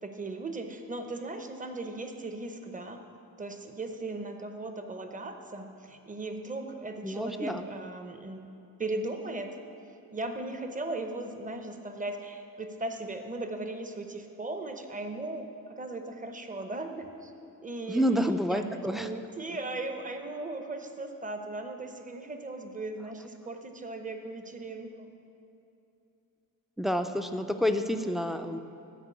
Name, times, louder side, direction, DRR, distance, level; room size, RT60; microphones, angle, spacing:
voice 1, 0.0-3.0 3.4-8.5 8.8-9.6 10.1-17.3 17.6-25.1, right 2 dB, 25° right, 5 dB, 0.8 m, -37 dB
voice 2, 7.0-7.7 17.9-19.1 26.8-28.6, equal, ahead, 7 dB, 0.4 m, -29 dB
12.5 x 5.2 x 8.2 m, 2.9 s
wide cardioid pair, 140°, 34 cm